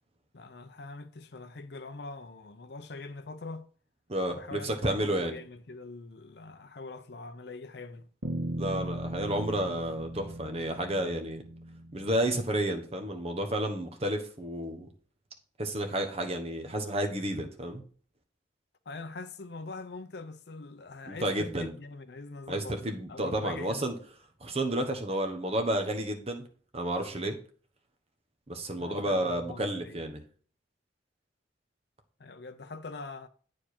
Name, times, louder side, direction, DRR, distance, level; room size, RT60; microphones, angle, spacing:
voice 1, 0.3-3.6 4.3-8.1 18.9-23.9 28.8-30.0 32.2-33.3, left 3 dB, 60° left, 0.6 m, -43 dB
voice 2, 4.1-5.3 8.6-11.4 11.9-14.9 15.6-17.8 21.0-21.7 22.5-24.0 24.4-26.4 26.7-27.4 28.5-30.2, right 1 dB, 30° right, 1.1 m, -31 dB
sound 1, 8.2-12.6, right 1 dB, 80° right, 1.6 m, -38 dB
8.7 x 4.9 x 4.3 m
head